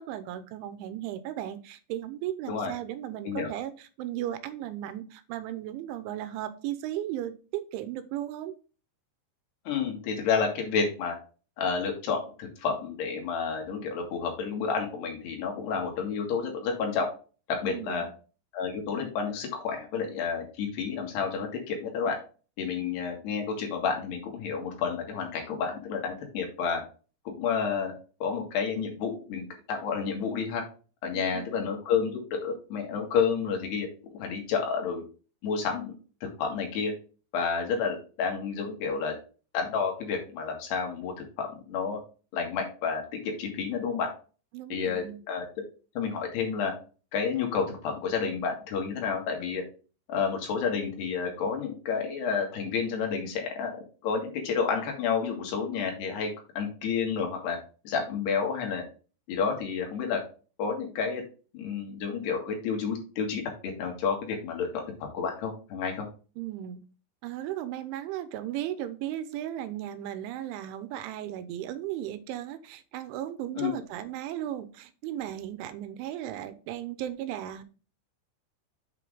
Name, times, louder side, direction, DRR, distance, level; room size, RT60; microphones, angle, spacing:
voice 1, 0.0-8.5 17.6-18.1 31.1-31.5 44.5-45.2 66.4-66.8 67.2-77.6, right 12 dB, 90° right, 12 dB, 3.2 m, -36 dB
voice 2, 9.7-11.2 11.6-17.1 17.5-18.1 18.5-22.2 22.6-26.8 27.3-27.9 28.2-30.6 31.0-35.0 35.4-35.9 36.2-36.9 37.3-39.2 39.5-42.0 42.3-44.1 44.7-45.5 46.0-46.7 47.1-49.6 50.1-53.7 54.0-56.3 56.6-57.6 57.9-58.8 59.3-60.2 60.6-61.2 61.5-64.8 65.1-66.1 73.6-73.7, left 6 dB, 65° left, 2 dB, 3.8 m, -30 dB
7.8 x 5.9 x 3.6 m, 0.36 s
omnidirectional pair, 5.4 m